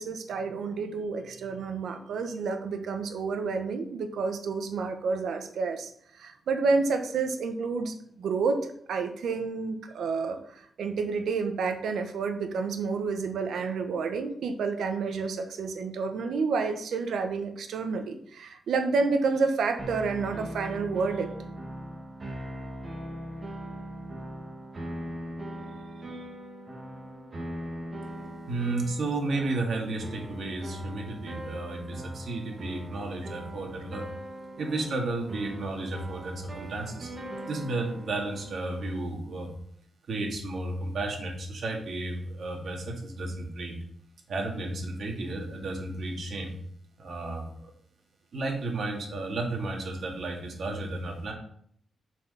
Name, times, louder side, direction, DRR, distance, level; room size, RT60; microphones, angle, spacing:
voice 1, 0.0-21.3, right 4 dB, 80° right, 6 dB, 1.1 m, -29 dB
sound 1, 19.8-39.0, right 1 dB, 30° right, 1.8 m, -40 dB
voice 2, 28.5-34.0 34.6-37.1 37.5-39.5 40.1-43.8 44.3-46.5 47.0-47.7 48.3-51.3, right 2 dB, 55° right, 0 dB, 2.2 m, -33 dB
7.4 x 4.8 x 5.8 m, 0.65 s
wide cardioid pair, 140°, 0 cm